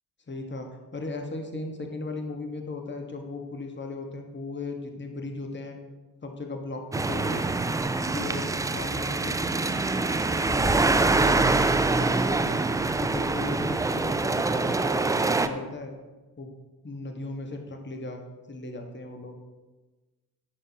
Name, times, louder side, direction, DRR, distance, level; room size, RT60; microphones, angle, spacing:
voice 1, 0.3-5.8 6.2-7.5 8.1-12.6 13.0-15.9 16.4-16.5 16.8-18.2 18.5-19.4, left 2 dB, 25° left, 4 dB, 1.5 m, -37 dB
sound 1, 6.9-15.5, right 3 dB, 10° right, 0.4 m, -25 dB
10.5 x 8.8 x 2.9 m, 1.2 s
figure-of-eight pair, 40°, 48 cm